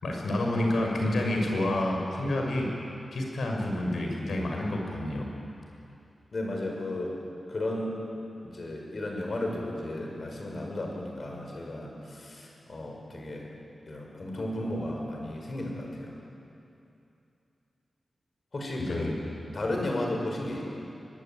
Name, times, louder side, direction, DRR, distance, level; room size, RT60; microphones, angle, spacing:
voice 1, 0.0-2.7 3.1-5.3 18.8-19.1, left 1 dB, 80° left, 1 dB, 5.8 m, -29 dB
voice 2, 6.3-7.2 7.5-8.0 8.4-13.5 13.9-16.1 18.5-19.1 19.5-20.6, left 1 dB, 45° left, 0 dB, 5.8 m, -34 dB
23.0 x 22.0 x 9.1 m, 2.7 s
wide cardioid pair, 130°, 0 cm